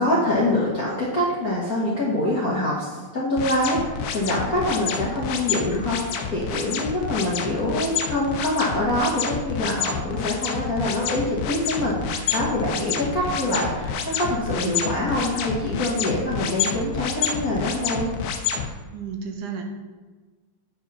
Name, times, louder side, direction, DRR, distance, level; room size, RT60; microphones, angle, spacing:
voice 1, 0.0-18.1, left 1 dB, 45° left, -5 dB, 1.2 m, -25 dB
sound 1, 3.4-18.7, left 7 dB, 70° left, 1.7 m, -28 dB
voice 2, 18.9-19.6, right 6 dB, 90° right, 3 dB, 2.5 m, -33 dB
8.7 x 5.0 x 5.5 m, 1.3 s
omnidirectional pair, 3.5 m